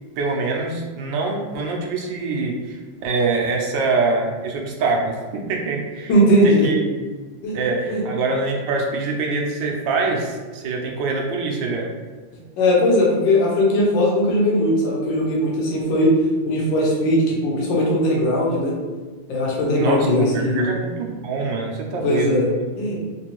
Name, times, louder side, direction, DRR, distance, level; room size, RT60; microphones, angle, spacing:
voice 1, 0.2-6.1 6.4-6.8 7.5-11.9 19.7-22.4, right 3 dB, 80° right, 0 dB, 1.3 m, -24 dB
voice 2, 6.1-6.7 7.4-7.6 7.9-8.0 12.6-16.1 16.4-18.7 19.3-20.7 22.0-22.4 22.8-23.0, left 1 dB, 80° left, -4 dB, 1.5 m, -19 dB
3.7 x 2.6 x 2.9 m, 1.4 s
omnidirectional pair, 2.0 m